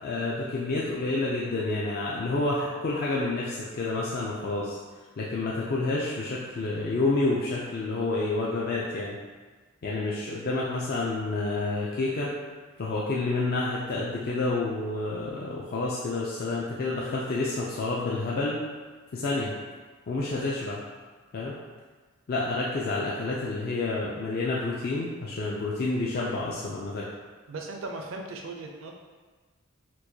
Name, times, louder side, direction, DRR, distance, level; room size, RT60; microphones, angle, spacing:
voice 1, 0.0-4.8 5.2-9.2 9.8-12.3 12.8-18.6 19.1-19.5 20.1-20.8 21.3-21.5 22.3-27.0, left 2 dB, 45° left, -5 dB, 0.4 m, -29 dB
voice 2, 27.5-28.9, right 3 dB, 65° right, 2 dB, 0.4 m, -37 dB
4.4 x 2.2 x 2.7 m, 1.4 s
head